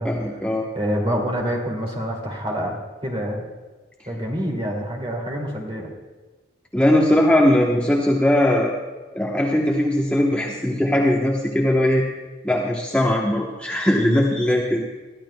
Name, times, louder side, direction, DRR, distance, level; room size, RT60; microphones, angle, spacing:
voice 1, 0.0-0.7 6.7-8.7 9.1-12.0 12.4-14.8, left 1 dB, 5° left, -2 dB, 0.9 m, -19 dB
voice 2, 0.7-3.4 4.1-5.9, equal, 30° right, 0 dB, 2.3 m, -26 dB
21.0 x 14.0 x 2.2 m, 1.3 s
head